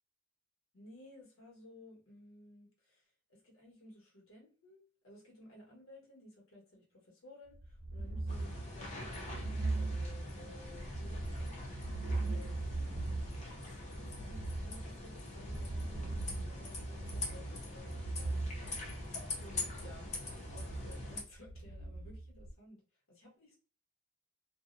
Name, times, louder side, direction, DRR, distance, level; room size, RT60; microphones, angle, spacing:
voice 1, 0.7-11.6 12.2-12.6 13.4-18.4 19.3-20.1 20.5-22.8 23.1-23.6, left 1 dB, 90° left, -2 dB, 1.3 m, -57 dB
sound 1, 7.5-22.5, right 2 dB, 85° right, 0.5 m, -40 dB
sound 2, 8.3-21.2, left 2 dB, 35° left, 0.6 m, -44 dB
2.6 x 2.0 x 2.5 m, 0.39 s
head